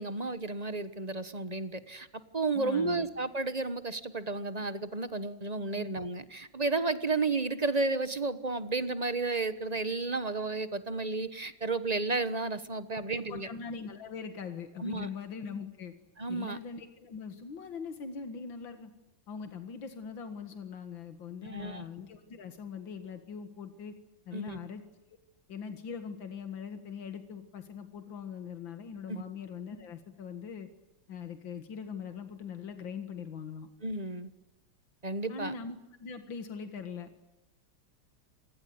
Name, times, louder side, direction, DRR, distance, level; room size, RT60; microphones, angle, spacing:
voice 1, 0.0-2.1 2.3-13.5 14.8-15.1 16.2-16.6 21.4-21.8 24.3-24.6 29.1-29.2 33.8-34.3 35.0-35.5, right 3 dB, 25° right, 13 dB, 1.2 m, -32 dB
voice 2, 2.5-3.1 5.7-5.9 12.9-15.9 16.3-18.9 19.3-23.9 24.3-24.8 25.1-25.2 25.5-30.7 31.1-33.7 35.3-37.1, left 6 dB, 85° left, 9 dB, 2.5 m, -41 dB
27.5 x 20.0 x 9.6 m, 0.92 s
omnidirectional pair, 2.0 m